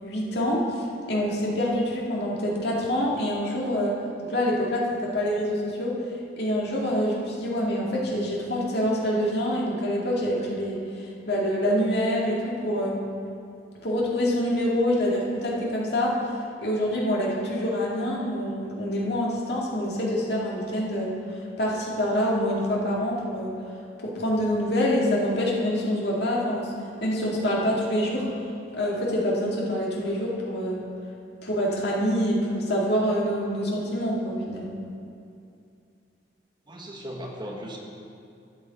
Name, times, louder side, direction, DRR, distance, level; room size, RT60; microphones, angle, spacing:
voice 1, 0.0-4.0 4.2-6.0 6.4-13.0 13.8-16.2 16.6-21.1 21.6-23.5 24.0-26.7 27.0-28.3 28.7-30.8 31.4-34.7, equal, 65° left, -4 dB, 2.0 m, -26 dB
voice 2, 36.7-37.8, equal, 25° right, 0 dB, 1.2 m, -37 dB
12.5 x 8.3 x 4.1 m, 2.5 s
head